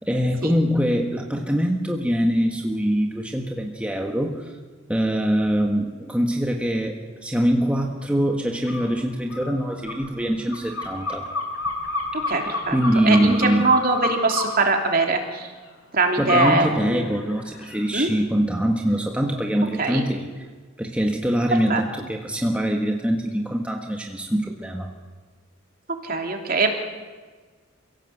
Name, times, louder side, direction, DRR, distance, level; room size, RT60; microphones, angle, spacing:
voice 1, 0.0-4.5 4.9-11.3 12.7-13.7 16.2-20.4 20.8-24.9, equal, 5° right, 1 dB, 1.6 m, -23 dB
sound 1, 8.7-8.9 9.3-14.5 16.3-16.6 17.0-17.8, left 3 dB, 90° left, 4.5 m, -29 dB
voice 2, 12.1-12.8 13.0-15.5 15.9-17.0 17.9-18.1 19.8-20.0 21.7-21.8 26.0-26.8, right 3 dB, 45° right, 3 dB, 3.1 m, -22 dB
29.0 x 17.0 x 7.9 m, 1.4 s
head